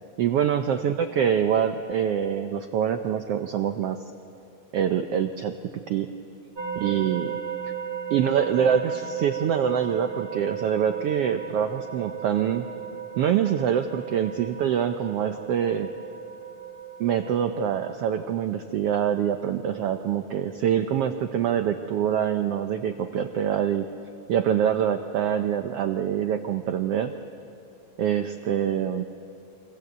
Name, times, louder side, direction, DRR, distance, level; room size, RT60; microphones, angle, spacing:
voice 1, 0.2-4.0 4.7-5.5 5.9-6.1 6.8-7.4 8.1-12.7 13.2-15.9 17.0-23.9 24.3-27.1 28.0-29.0, right 9 dB, 85° right, 7 dB, 1.3 m, -25 dB
sound 1, 6.5-18.0, right 8 dB, 45° right, 1.2 m, -36 dB
27.5 x 25.5 x 8.1 m, 2.8 s
omnidirectional pair, 3.7 m